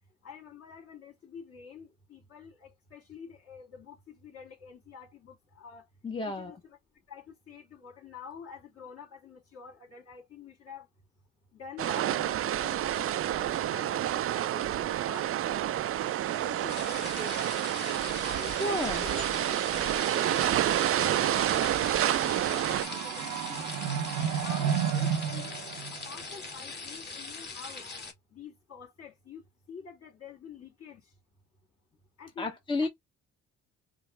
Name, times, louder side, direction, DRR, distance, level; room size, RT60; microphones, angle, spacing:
voice 1, 0.2-5.9 6.3-6.8 7.1-10.9 11.5-17.4 18.3-23.7 24.2-25.6 25.9-27.9 28.3-31.1 32.2-32.5 32.8-32.9, left 6 dB, 50° left, 2.8 m, -48 dB
voice 2, 6.0-6.6 18.1-19.1 32.4-32.9, left 2 dB, 15° left, 0.9 m, -32 dB
sound 1, 11.8-22.9, right 12 dB, 50° right, 0.4 m, -29 dB
sound 2, 15.8-26.5, right 9 dB, 85° right, 0.7 m, -35 dB
sound 3, 16.7-28.1, left 4 dB, 35° left, 1.9 m, -41 dB
4.6 x 2.0 x 3.3 m
cardioid pair, 90°, 30 cm